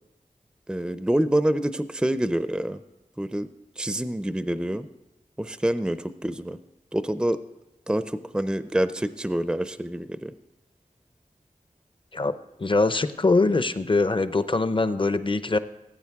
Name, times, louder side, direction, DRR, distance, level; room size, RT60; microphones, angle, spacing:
voice 1, 0.7-2.8 3.2-3.5 3.8-4.9 5.4-6.6 6.9-7.4 7.9-10.3, right 1 dB, 5° right, 12 dB, 0.5 m, -26 dB
voice 2, 12.6-15.6, left 3 dB, 35° left, 12 dB, 0.6 m, -22 dB
16.5 x 8.9 x 3.6 m, 0.97 s
wide cardioid pair, 50°, 14 cm